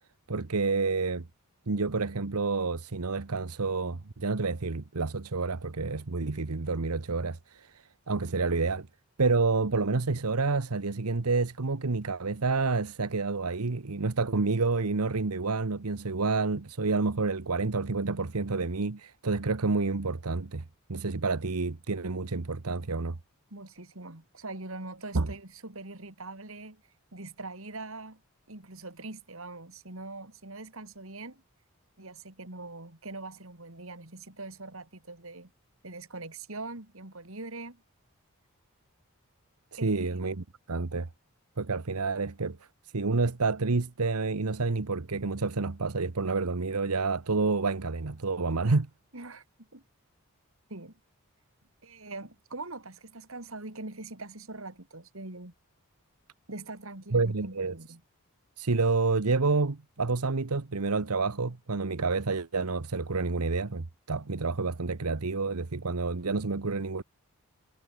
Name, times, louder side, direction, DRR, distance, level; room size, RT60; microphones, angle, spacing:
voice 1, 0.3-1.3 1.7-8.9 9.2-20.6 20.9-23.2 25.1-25.3 39.7-41.1 41.6-42.6 42.9-48.9 57.1-57.7 58.6-67.0, right 3 dB, 90° right, 1.1 m, -29 dB
voice 2, 23.5-26.8 27.1-28.2 28.5-31.4 32.0-35.5 35.8-37.8 39.8-40.4 49.1-49.8 50.7-51.0 51.8-55.5 56.5-58.0, right 2 dB, 65° right, 3.0 m, -42 dB
head